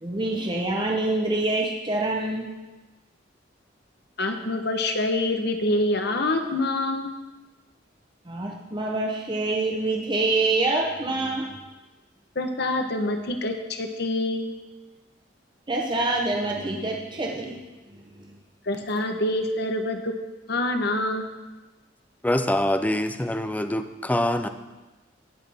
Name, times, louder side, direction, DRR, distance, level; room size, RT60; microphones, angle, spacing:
voice 1, 0.0-2.5 8.3-11.6 15.7-17.6 17.9-18.3, right 2 dB, 25° right, -1 dB, 0.8 m, -26 dB
voice 2, 4.2-7.1 12.3-14.5 18.7-20.1 20.5-21.2, left 2 dB, 60° left, 6 dB, 1.1 m, -26 dB
voice 3, 22.2-24.5, left 1 dB, 10° left, 9 dB, 0.5 m, -24 dB
17.0 x 6.5 x 3.5 m, 1.1 s
head